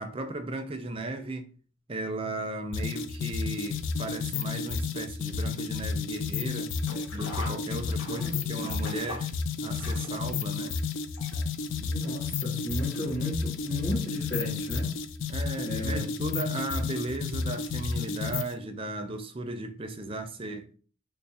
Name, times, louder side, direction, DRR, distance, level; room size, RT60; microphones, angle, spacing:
voice 1, 0.0-1.5 1.9-6.7 7.1-9.3 9.6-10.8 15.3-20.7, right 2 dB, 25° right, 0.4 m, -36 dB
sound 1, 2.7-18.6, left 5 dB, 65° left, 0.4 m, -32 dB
Sink (filling or washing), 6.7-11.7 12.0-12.1 13.1-13.2 13.5-13.6, left 2 dB, 85° left, 1.3 m, -42 dB
voice 2, 8.1-8.4 11.8-15.0 15.6-16.0, equal, 35° left, 1.3 m, -34 dB
3.4 x 2.1 x 4.1 m
head